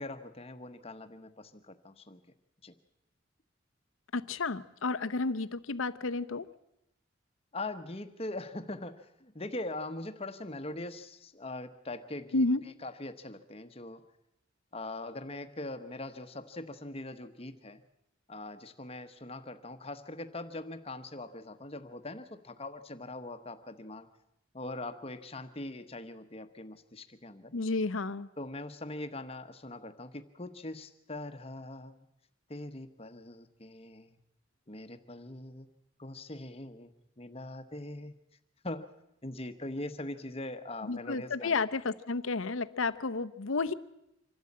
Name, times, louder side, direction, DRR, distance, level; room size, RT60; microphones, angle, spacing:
voice 1, 0.0-2.2 2.6-2.7 7.5-14.0 14.7-17.8 18.3-24.1 24.5-27.5 28.4-32.1 32.5-34.2 34.7-35.7 36.0-38.2 38.6-38.9 39.2-41.7, left 2 dB, 30° left, 9 dB, 1.1 m, -42 dB
voice 2, 4.1-6.5 12.3-12.6 27.5-28.3 40.8-43.7, left 3 dB, 80° left, 12 dB, 0.8 m, -31 dB
25.5 x 12.5 x 8.6 m, 0.84 s
head